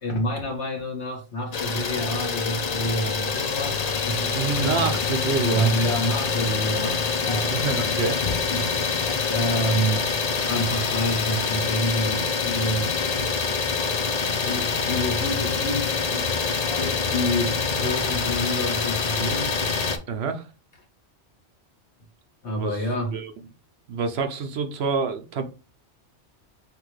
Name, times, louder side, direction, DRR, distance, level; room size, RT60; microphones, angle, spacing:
voice 1, 0.0-4.9 5.4-8.0 8.5-9.0 9.3-10.1 10.5-13.1 14.3-16.4 16.8-19.5 22.4-23.2, equal, 70° left, 1.7 m, -28 dB
Idling, 1.5-20.0, left 5 dB, 45° left, 0.6 m, -25 dB
voice 2, 4.3-5.7 7.4-8.2 20.1-20.5 22.5-22.8 23.1-23.3 23.9-25.4, right 5 dB, 65° right, 0.9 m, -27 dB
5.9 x 2.6 x 3.2 m
omnidirectional pair, 1.2 m